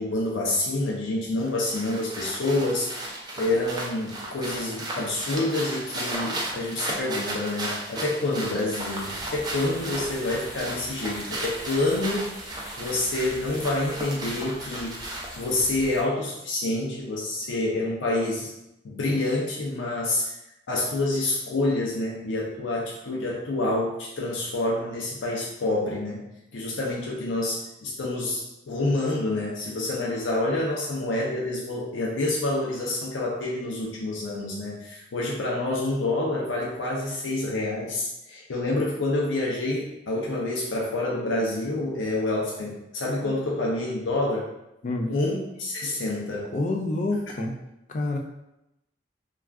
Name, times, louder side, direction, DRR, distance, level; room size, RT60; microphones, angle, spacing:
voice 1, 0.0-12.3 12.8-15.0 15.4-18.5 18.8-20.3 20.7-26.2 26.5-28.4 28.7-44.5 45.1-46.5, left 2 dB, 90° left, -4 dB, 0.5 m, -27 dB
sound 1, 1.4-15.5, right 1 dB, 20° right, 0.4 m, -35 dB
sound 2, 8.7-16.0, equal, 10° left, 1.2 m, -43 dB
voice 2, 46.5-47.6 47.9-48.2, left 2 dB, 40° left, 2 dB, 0.3 m, -28 dB
2.3 x 2.3 x 3.3 m, 0.89 s
head